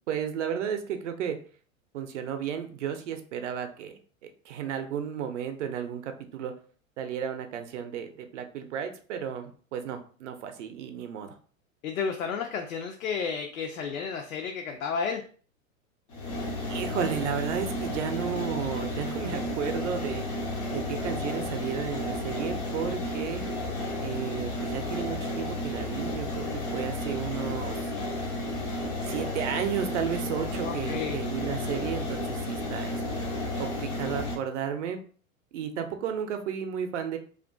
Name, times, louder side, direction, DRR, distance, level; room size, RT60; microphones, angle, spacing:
voice 1, 0.1-1.4 1.9-6.5 7.0-11.3 16.7-20.3 20.7-23.4 24.0-27.9 29.0-33.3 33.6-35.0 35.5-37.2, right 8 dB, 60° right, 6 dB, 0.6 m, -33 dB
voice 2, 11.8-15.2 30.6-31.2, left 6 dB, 70° left, 3 dB, 0.5 m, -32 dB
sound 1, 16.1-34.4, left 1 dB, 15° left, 0.3 m, -32 dB
2.4 x 2.4 x 2.2 m, 0.42 s
figure-of-eight pair, 95°, 42 cm